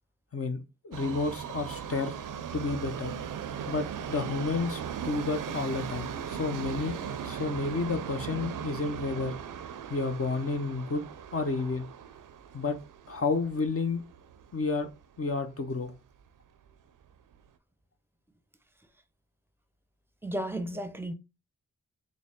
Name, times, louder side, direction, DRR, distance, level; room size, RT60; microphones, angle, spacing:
voice 1, 0.3-3.1 3.7-9.4 9.9-11.1 11.3-11.9 12.5-12.8 13.1-14.0 14.5-14.9 15.2-15.9, left 4 dB, 40° left, 0.6 m, -31 dB
Subway metro underground, 0.9-15.0 15.3-15.4 16.3-16.4 16.7-16.8 17.4-17.5, right 8 dB, 65° right, 0.5 m, -38 dB
voice 2, 20.2-21.1, right 1 dB, 5° right, 0.7 m, -33 dB
3.8 x 2.1 x 3.5 m
cardioid pair, 40°, 35 cm